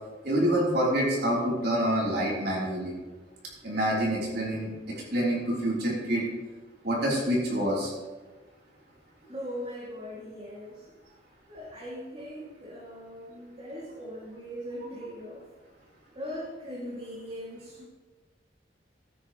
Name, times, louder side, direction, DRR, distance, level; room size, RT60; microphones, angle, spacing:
voice 1, 0.2-2.9 3.6-6.2 6.8-7.9, right 1 dB, 65° right, -4 dB, 3.4 m, -27 dB
voice 2, 9.3-10.9 11.5-15.5 16.1-17.8, equal, 35° right, -6 dB, 2.4 m, -40 dB
14.0 x 9.6 x 3.1 m, 1.3 s
head